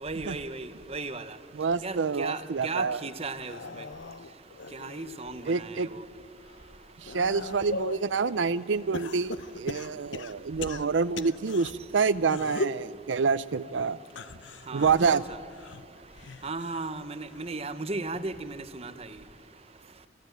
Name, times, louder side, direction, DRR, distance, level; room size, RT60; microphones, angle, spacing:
voice 1, 0.0-1.3 1.8-3.6 4.7-6.0 14.7-15.2 16.4-18.9, right 3 dB, 35° right, 11 dB, 1.0 m, -36 dB
voice 2, 1.5-3.0 5.5-5.9 7.0-14.0 14.7-15.2, right 5 dB, 85° right, 14 dB, 0.6 m, -27 dB
Help Me, 3.3-5.6 6.1-8.1 8.9-11.7 12.2-12.9 14.0-16.9 17.3-17.7 18.9-19.0, left 3 dB, 80° left, 0.7 m, -39 dB
29.5 x 14.5 x 9.2 m, 2.3 s
head